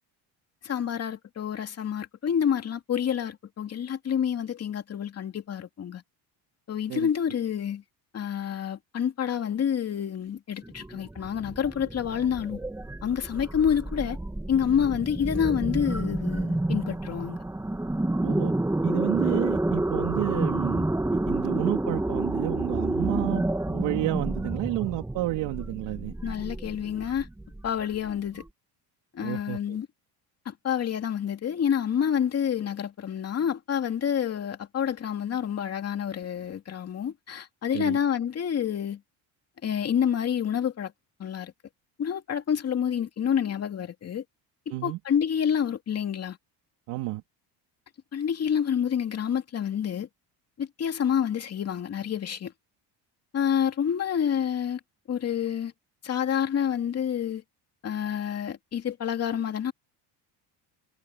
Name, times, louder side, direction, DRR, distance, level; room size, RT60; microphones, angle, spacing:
voice 1, 0.6-6.0 6.7-7.8 8.1-12.6 13.0-14.2 14.5-17.4 26.2-27.3 27.6-28.4 29.1-29.9 30.5-39.0 39.6-40.9 41.2-41.5 42.0-44.2 44.7-46.4 48.1-50.1 50.6-52.5 53.3-54.8 55.1-55.7 56.0-57.4 57.8-59.7, left 8 dB, 35° left, 2.6 m, -28 dB
sound 1, 10.6-28.4, right 2 dB, 5° right, 1.7 m, -29 dB
voice 2, 18.2-18.5 18.8-26.2 29.2-29.6 37.7-38.0 44.7-45.0 46.9-47.2, right 18 dB, 80° right, 3.0 m, -31 dB
cardioid pair, 140°, 42 cm